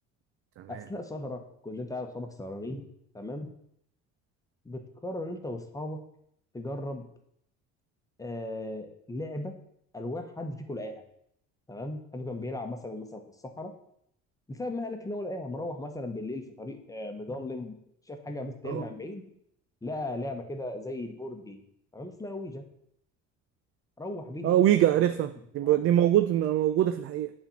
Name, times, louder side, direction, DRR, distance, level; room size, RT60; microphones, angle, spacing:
voice 1, 0.7-2.9 3.1-3.5 4.6-6.0 6.5-7.0 8.2-9.5 9.9-11.0 11.7-13.7 14.5-17.7 18.1-19.2 19.8-21.6 21.9-22.7 24.0-24.6 24.9-25.3 25.6-25.8, left 1 dB, 10° left, 1.1 m, -37 dB
voice 2, 24.4-25.3 25.5-27.3, right 12 dB, 50° right, 0.5 m, -23 dB
8.8 x 4.3 x 7.1 m
cardioid pair, 130°, 29 cm